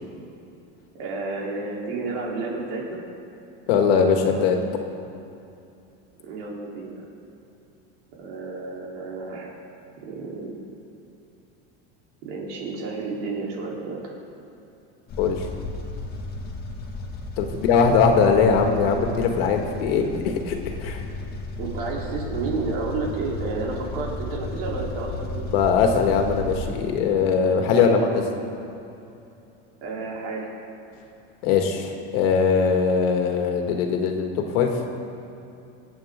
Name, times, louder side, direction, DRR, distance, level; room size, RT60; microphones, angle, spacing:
voice 1, 0.9-3.0 6.2-7.1 8.2-9.6 10.0-10.5 12.2-14.1 21.6-25.8 27.9-28.5 29.8-30.5, right 3 dB, 75° right, -3 dB, 3.6 m, -31 dB
voice 2, 3.7-4.6 15.2-15.5 17.4-21.0 25.5-28.1 31.4-34.8, left 5 dB, 75° left, 3 dB, 1.9 m, -21 dB
sound 1, 15.1-26.7, left 2 dB, 30° left, 1.6 m, -33 dB
26.5 x 8.8 x 3.7 m, 2.7 s
cardioid pair, 160°, 29 cm